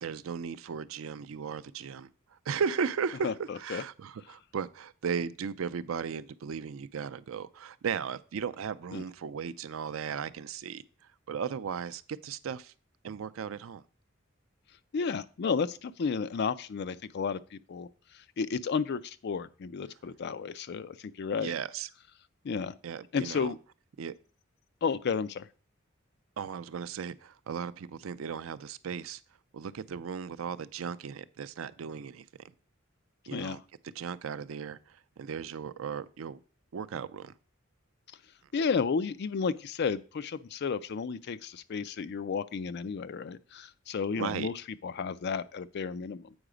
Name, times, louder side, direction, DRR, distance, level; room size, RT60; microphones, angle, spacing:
voice 1, 0.0-10.8 11.3-12.7 13.0-13.8 21.4-21.9 22.8-23.5 24.0-24.1 26.4-29.2 29.5-32.3 33.3-36.4 36.7-37.3 44.2-44.5, right 6 dB, 85° right, 0.4 m, -36 dB
voice 2, 3.2-3.8 8.9-9.0 14.9-21.5 22.4-22.8 23.1-23.6 24.8-25.5 33.3-33.6 38.5-44.5 44.8-46.3, left 5 dB, 55° left, 0.4 m, -32 dB
7.9 x 4.8 x 5.0 m
head